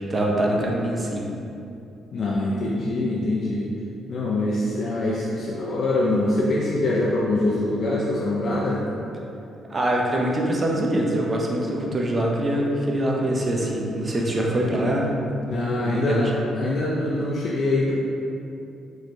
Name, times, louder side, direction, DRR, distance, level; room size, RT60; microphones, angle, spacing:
voice 1, 0.1-1.2 9.7-15.4 15.7-16.3, right 1 dB, 30° right, -2 dB, 0.5 m, -24 dB
voice 2, 2.1-3.7 4.1-8.8 15.5-17.9, left 2 dB, 50° left, -5 dB, 0.4 m, -24 dB
3.1 x 3.1 x 2.7 m, 2.7 s
cardioid pair, 90°, 0 cm